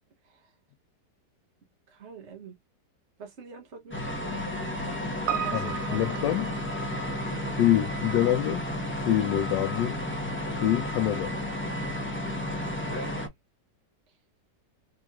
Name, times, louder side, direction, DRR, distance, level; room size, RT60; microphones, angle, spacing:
voice 1, 1.9-2.5 3.2-4.4 5.2-6.0 7.3-7.6, right 6 dB, 45° right, 1.1 m, -45 dB
sound 1, 3.9-13.3, left 1 dB, 10° left, 0.7 m, -32 dB
Piano, 5.3-9.8 10.1-10.2, right 9 dB, 65° right, 0.9 m, -37 dB
voice 2, 5.5-6.5 7.6-8.6 9.1-10.0 10.6-11.3, left 12 dB, 90° left, 1.3 m, -25 dB
4.7 x 2.9 x 2.3 m
omnidirectional pair, 1.9 m